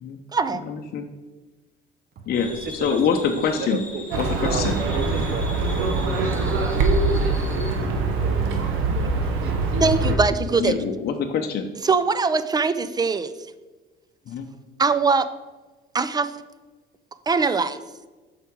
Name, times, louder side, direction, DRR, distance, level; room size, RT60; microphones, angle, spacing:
voice 1, 0.6-1.1 2.3-2.5 2.7-3.8 4.2-4.8 10.6-11.7 14.3-14.5, left 6 dB, 50° left, 3 dB, 0.7 m, -25 dB
sound 1, 2.3-7.7, left 2 dB, 5° left, 2.1 m, -40 dB
voice 2, 2.4-3.0 3.2-4.0 4.3-7.3 7.6-7.8 8.2-9.5 10.0-10.3, right 4 dB, 45° right, 9 dB, 0.8 m, -33 dB
Livestock farm animals working animals, 4.1-10.2, right 3 dB, 75° right, 1.1 m, -23 dB
voice 3, 9.8-10.7 11.8-13.3 14.8-15.3 15.9-16.3 17.3-17.8, right 4 dB, 20° right, 13 dB, 0.4 m, -21 dB
6.7 x 5.0 x 4.6 m, 1.2 s
supercardioid pair, 90°, 21 cm